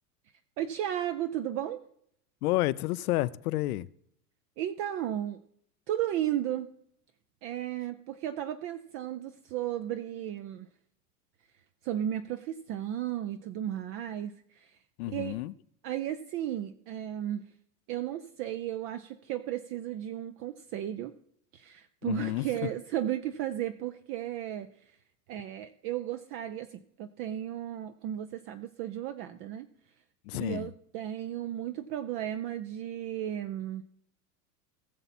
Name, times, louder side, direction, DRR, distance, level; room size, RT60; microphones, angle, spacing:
voice 1, 0.6-1.8 4.6-5.4 5.9-6.7 7.4-10.7 11.8-14.8 15.1-15.4 15.8-17.4 17.9-21.1 21.5-25.0 25.3-29.7 30.3-33.8, right 11 dB, 30° right, 0.4 m, -34 dB
voice 2, 2.4-3.9 15.0-15.5 22.0-22.7 30.2-30.7, left 17 dB, 70° left, 0.7 m, -30 dB
19.0 x 7.0 x 4.2 m
supercardioid pair, 145°, 46 cm